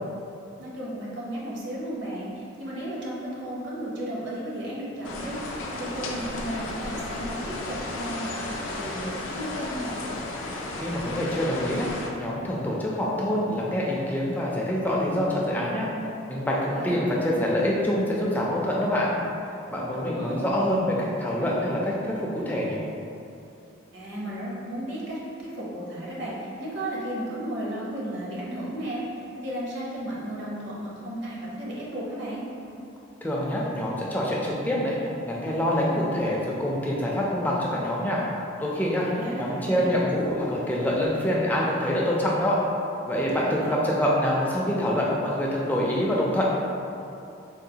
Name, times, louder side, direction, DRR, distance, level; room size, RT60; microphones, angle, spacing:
voice 1, 0.6-5.4 5.7-10.0 16.7-17.5 19.9-20.5 23.9-29.0 29.4-32.5 39.0-40.0 43.3-43.7, right 1 dB, 65° right, -5 dB, 0.7 m, -34 dB
sound 1, 5.0-12.1, left 2 dB, 80° left, 0.4 m, -34 dB
voice 2, 10.8-11.9 12.2-15.9 16.3-19.1 19.7-22.8 33.2-35.0 35.2-38.2 38.6-39.1 39.4-42.6 43.1-46.4, equal, 10° left, -4 dB, 0.3 m, -26 dB
3.7 x 2.3 x 2.7 m, 2.7 s
head